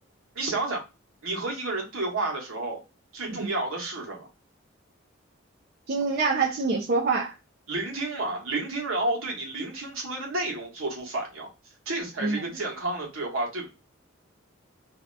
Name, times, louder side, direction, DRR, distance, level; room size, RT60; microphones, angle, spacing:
voice 1, 0.3-0.8 1.2-2.8 3.1-4.3 7.7-11.5 11.9-13.7, right 2 dB, 80° right, 1.2 m, -31 dB
voice 2, 5.9-7.3 12.2-12.4, right 4 dB, 50° right, 0.4 m, -26 dB
2.7 x 2.2 x 3.8 m
head